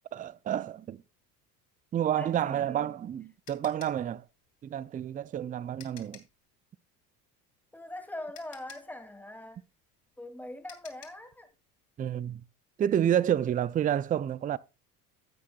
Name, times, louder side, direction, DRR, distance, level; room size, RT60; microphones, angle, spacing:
voice 1, 0.1-1.0 1.9-4.2 4.6-6.2 12.0-12.4 12.8-14.6, right 10 dB, 20° right, 0.4 m, -29 dB
voice 2, 2.1-3.0 7.7-9.6 10.2-11.5, left 1 dB, 5° left, 2.4 m, -42 dB
sound 1, 2.7-6.4 7.8-7.9 8.3-11.3, left 8 dB, 45° left, 2.9 m, -53 dB
15.5 x 8.4 x 2.3 m
hypercardioid pair, 75°, 47 cm